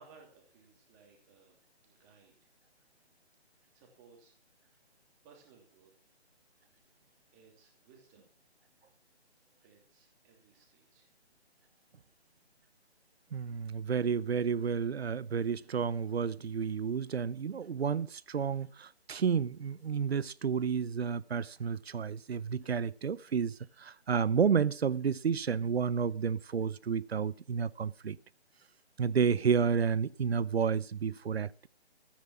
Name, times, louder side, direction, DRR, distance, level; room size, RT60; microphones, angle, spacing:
voice 1, 0.0-1.6 1.8-2.5 3.7-4.3 4.6-5.0 5.2-5.9 6.8-7.0 7.3-8.3 9.6-11.1, right 5 dB, 15° right, 3.0 m, -61 dB
voice 2, 13.3-23.5 23.8-28.2 29.0-31.7, right 6 dB, 65° right, 0.8 m, -31 dB
14.5 x 9.7 x 6.0 m
hypercardioid pair, 165°, 34 cm